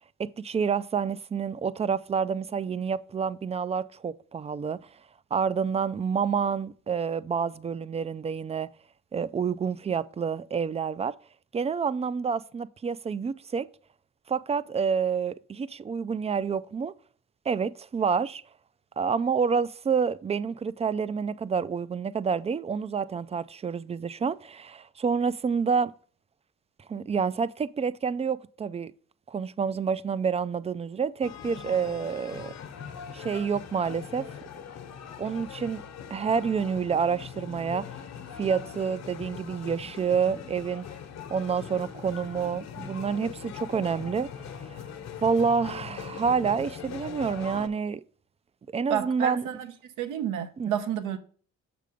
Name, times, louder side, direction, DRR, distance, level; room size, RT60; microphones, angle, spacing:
voice 1, 0.2-4.8 5.3-8.7 9.1-11.2 11.5-13.7 14.3-16.9 17.5-18.4 19.0-25.9 26.9-28.9 29.3-32.5 33.1-34.3 35.2-35.8 36.1-37.9 38.4-40.9 41.3-44.3 44.6-44.8 45.2-48.0 48.7-49.4 50.6-50.7, right 6 dB, 20° right, 0.3 m, -28 dB
sound 1, 31.2-47.7, left 7 dB, 60° left, 1.1 m, -41 dB
voice 2, 48.9-49.7 50.0-51.2, right 9 dB, 90° right, 1.0 m, -30 dB
6.6 x 5.2 x 5.0 m
cardioid pair, 90°, 30 cm